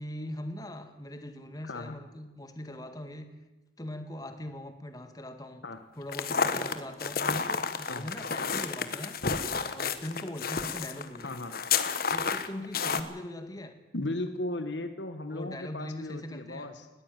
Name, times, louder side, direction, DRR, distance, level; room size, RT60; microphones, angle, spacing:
voice 1, 0.0-3.3 3.8-5.6 6.0-9.2 9.5-11.3 12.1-13.7 15.3-16.7, left 1 dB, 20° left, 7 dB, 1.8 m, -41 dB
voice 2, 1.6-2.0 5.6-5.8 7.9-8.1 11.2-11.5 13.9-16.9, left 2 dB, 80° left, 8 dB, 1.4 m, -36 dB
sound 1, 6.1-13.0, left 5 dB, 55° left, 1.3 m, -30 dB
20.0 x 14.5 x 9.1 m, 1.1 s
head